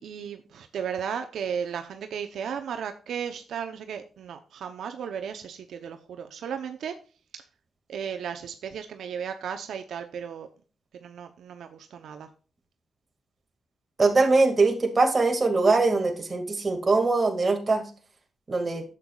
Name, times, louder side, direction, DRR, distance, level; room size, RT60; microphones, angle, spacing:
voice 1, 0.0-6.9 7.3-7.4 7.9-10.5 11.0-12.3, right 7 dB, 80° right, 7 dB, 0.7 m, -35 dB
voice 2, 14.0-17.8 18.5-18.8, right 3 dB, 30° right, 4 dB, 2.1 m, -22 dB
10.5 x 7.6 x 2.4 m, 0.37 s
cardioid pair, 90°, 0 cm